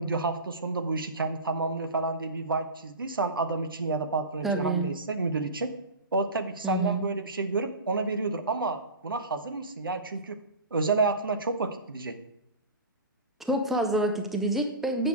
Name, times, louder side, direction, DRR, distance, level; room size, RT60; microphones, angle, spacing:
voice 1, 0.0-5.7 6.1-10.4 10.7-12.2, right 3 dB, 75° right, 8 dB, 1.0 m, -30 dB
voice 2, 4.4-4.9 6.6-7.1 13.4-15.1, right 1 dB, ahead, 4 dB, 0.5 m, -27 dB
8.7 x 6.7 x 4.6 m, 0.83 s
figure-of-eight pair, 140°, 12 cm